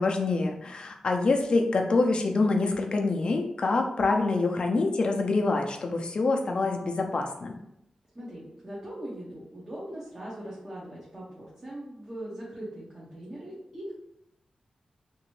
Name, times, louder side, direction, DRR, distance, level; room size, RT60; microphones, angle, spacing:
voice 1, 0.0-7.6, left 3 dB, 50° left, 3 dB, 0.5 m, -26 dB
voice 2, 8.1-13.9, right 1 dB, 25° right, -8 dB, 0.9 m, -40 dB
2.9 x 2.6 x 3.0 m, 0.80 s
wide cardioid pair, 120°, 2 cm